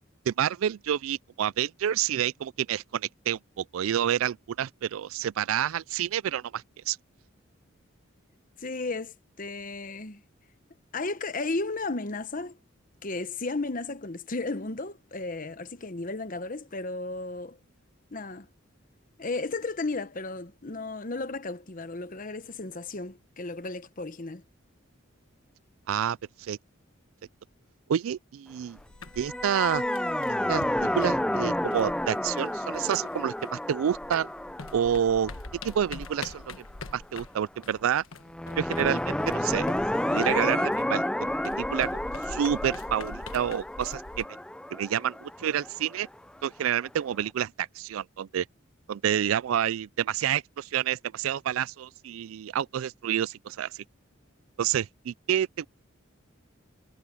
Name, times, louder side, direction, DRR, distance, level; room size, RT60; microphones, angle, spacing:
voice 1, 0.3-7.0 25.9-26.6 27.9-28.8 29.2-29.8 30.5-34.3 34.7-35.3 35.6-36.5 36.9-38.0 38.6-39.7 40.1-41.3 41.6-41.9 42.3-44.3 44.7-46.1 46.4-48.5 48.9-53.8 54.6-55.7, right 9 dB, 80° right, 0.3 m, -28 dB
voice 2, 8.6-10.2 10.9-12.6 13.0-17.6 18.1-18.5 19.2-24.4, left 3 dB, 40° left, 1.0 m, -34 dB
sound 1, 28.8-33.7 33.9-44.3, left 3 dB, 80° left, 1.3 m, -44 dB
sound 2, 29.2-36.4 38.3-46.1, left 1 dB, 5° left, 0.5 m, -30 dB
head